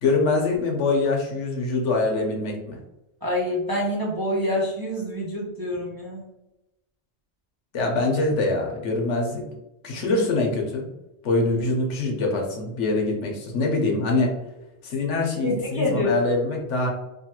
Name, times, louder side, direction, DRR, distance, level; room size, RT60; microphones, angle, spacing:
voice 1, 0.0-2.8 7.7-9.4 9.8-10.9 11.2-14.3 14.8-16.9, left 3 dB, 80° left, 0 dB, 1.1 m, -24 dB
voice 2, 3.2-6.2 15.4-16.2, left 1 dB, 25° right, -5 dB, 0.5 m, -26 dB
3.1 x 2.2 x 2.9 m, 0.94 s
omnidirectional pair, 1.2 m